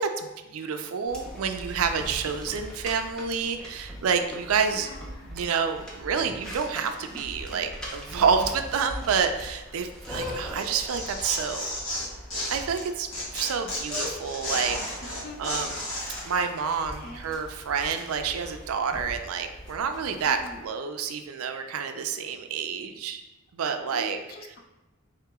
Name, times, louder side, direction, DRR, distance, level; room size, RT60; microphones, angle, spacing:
voice 1, 0.0-4.9 5.2-11.7 12.5-13.1 13.3-15.8 16.2-23.2 23.5-24.2, right 6 dB, 85° right, 6 dB, 0.4 m, -28 dB
sound 1, 1.1-20.7, equal, 5° left, 0.6 m, -41 dB
voice 2, 4.7-5.4 15.0-15.6 16.1-16.2 16.9-17.4 20.2-20.6 23.9-24.6, equal, 45° left, 3 dB, 0.4 m, -44 dB
Tearing, 10.6-12.8 13.1-16.2, left 1 dB, 60° left, 1.4 m, -33 dB
3.9 x 2.8 x 3.5 m, 1.0 s
head